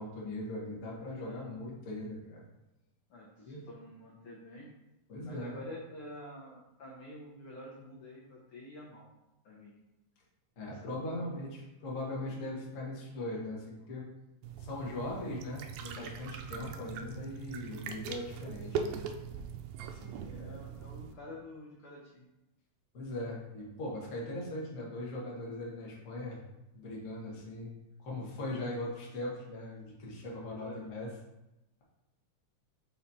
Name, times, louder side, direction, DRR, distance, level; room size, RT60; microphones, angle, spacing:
voice 1, 0.0-2.4 3.5-3.6 5.1-5.6 10.6-14.0 14.6-19.0 19.9-20.6 22.9-26.4 26.7-31.1, left 1 dB, 60° left, -4 dB, 0.8 m, -40 dB
voice 2, 3.1-4.7 5.2-9.1 9.4-9.7 10.7-11.3 20.2-22.3 28.3-29.1 30.4-30.9, left 1 dB, 80° left, -3 dB, 1.2 m, -48 dB
sound 1, 14.4-21.1, right 7 dB, 80° right, 1.8 m, -41 dB
5.7 x 4.0 x 4.1 m, 0.94 s
omnidirectional pair, 3.6 m